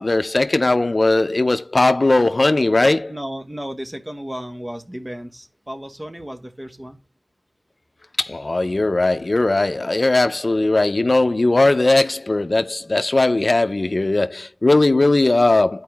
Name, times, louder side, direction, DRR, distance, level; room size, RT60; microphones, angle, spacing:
voice 1, 0.0-3.1 8.2-15.8, left 2 dB, 65° left, 0.5 m, -18 dB
voice 2, 3.1-7.0, equal, 25° right, 1.3 m, -33 dB
13.0 x 4.6 x 2.3 m
wide cardioid pair, 55°, 0 cm